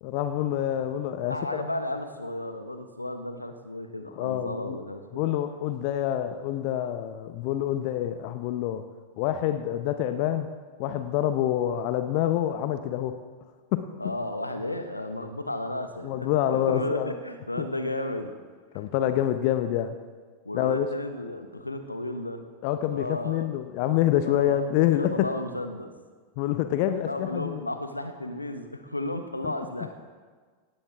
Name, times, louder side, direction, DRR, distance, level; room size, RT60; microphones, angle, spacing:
voice 1, 0.0-1.6 4.2-4.8 5.1-8.8 9.2-10.5 10.8-13.2 13.7-13.9 16.0-17.1 18.7-20.0 20.5-20.9 22.6-25.3 26.4-27.6 29.4-29.5, left 11 dB, 45° left, 10 dB, 0.8 m, -27 dB
voice 2, 1.3-5.2 14.0-18.3 18.7-18.9 20.4-22.4 22.9-23.5 24.3-24.7 25.0-25.9 27.0-29.9, left 1 dB, 85° left, 8 dB, 1.2 m, -33 dB
18.0 x 17.0 x 3.6 m, 1.5 s
figure-of-eight pair, 90°, 0 cm